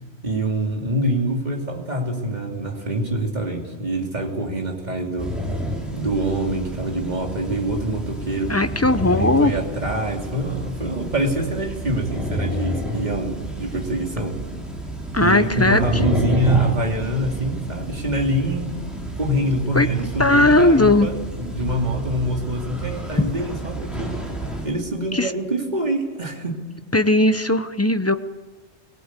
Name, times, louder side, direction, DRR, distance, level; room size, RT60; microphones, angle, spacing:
voice 1, 0.2-5.4 5.9-8.6 9.0-14.4 15.2-18.7 19.2-24.2 24.6-26.6, right 1 dB, 40° right, 1 dB, 3.0 m, -25 dB
sound 1, 5.2-24.7, right 1 dB, ahead, 4.6 m, -30 dB
voice 2, 8.5-9.5 15.1-16.1 19.7-19.9 20.2-21.1 23.2-23.3 25.1-25.3 26.9-28.1, left 2 dB, 15° left, 10 dB, 0.7 m, -18 dB
22.0 x 18.0 x 8.3 m, 1.3 s
omnidirectional pair, 1.2 m